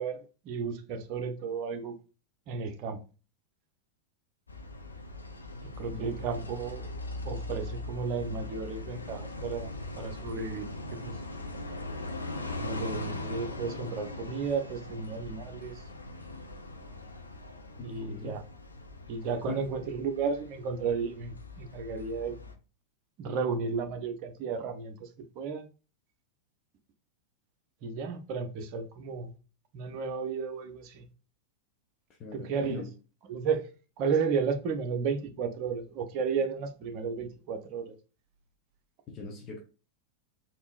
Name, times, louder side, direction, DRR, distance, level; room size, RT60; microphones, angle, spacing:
voice 1, 0.0-1.9 2.5-3.0 5.8-6.9 7.2-11.1 12.6-15.8 17.8-18.4 19.1-22.3 23.2-25.1 25.4-25.6 27.8-29.3 29.7-31.1 32.3-32.8 33.3-33.6 34.0-38.0, right 5 dB, 40° right, 0.6 m, -33 dB
sound 1, 4.5-22.5, left 2 dB, 80° left, 0.5 m, -41 dB
voice 2, 5.9-6.5 17.8-18.4 19.5-19.7 32.2-32.9 39.1-39.6, left 4 dB, 30° left, 0.7 m, -41 dB
3.6 x 2.6 x 2.4 m
figure-of-eight pair, 90°, 0 cm